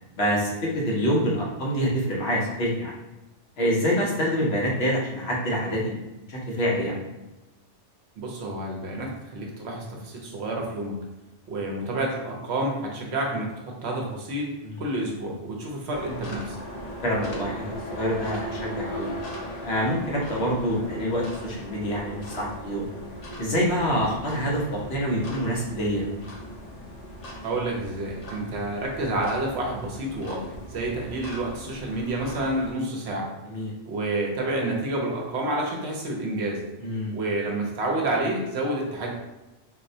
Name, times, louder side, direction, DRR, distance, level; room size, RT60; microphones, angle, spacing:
voice 1, 0.1-2.9 3.6-6.0 6.3-7.0 14.6-14.8 17.0-19.1 19.6-22.9 23.4-26.0 33.4-33.7 36.8-37.1, equal, 60° left, -4 dB, 1.0 m, -26 dB
voice 2, 8.2-11.0 11.5-16.6 27.4-33.3 33.9-36.6 37.1-39.1, right 1 dB, 70° right, 0 dB, 0.9 m, -29 dB
sound 1, 15.9-32.7, equal, 45° left, 0.6 m, -38 dB
4.1 x 2.1 x 2.6 m, 0.99 s
omnidirectional pair, 1.2 m